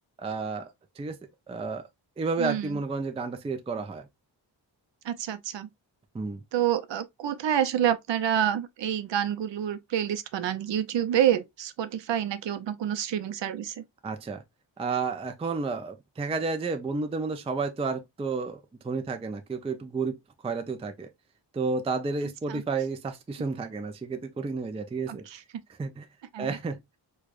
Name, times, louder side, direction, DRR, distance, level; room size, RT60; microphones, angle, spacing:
voice 1, 0.2-0.7 1.0-1.2 1.5-1.8 2.2-4.1 6.1-6.4 14.0-14.4 14.8-20.1 20.4-21.1 21.5-25.2 25.8-26.1 26.4-27.0, right 4 dB, 15° right, 0.4 m, -31 dB
voice 2, 2.4-2.8 5.0-5.7 6.5-13.8 22.5-22.6 25.1-25.4 26.3-26.6, right 10 dB, 70° right, 0.6 m, -28 dB
4.7 x 2.3 x 2.4 m
wide cardioid pair, 125°, 45 cm